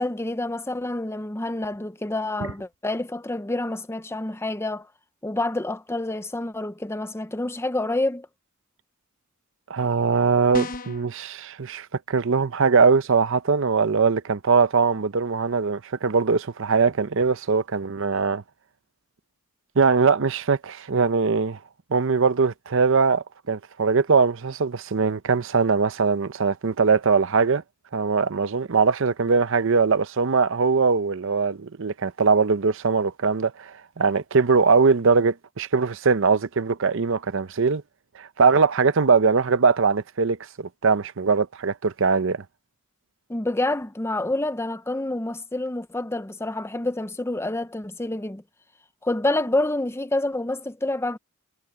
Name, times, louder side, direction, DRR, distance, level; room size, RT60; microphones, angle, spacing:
voice 1, 0.0-4.9 5.2-8.3 43.3-48.4 49.0-51.2, left 2 dB, 10° left, 0.7 m, -28 dB
voice 2, 9.7-18.4 19.8-21.6 21.9-27.6 27.9-37.8 38.2-42.4, right 5 dB, 65° right, 0.7 m, -21 dB
sound 1, 10.5-11.1, left 2 dB, 40° left, 0.8 m, -32 dB
head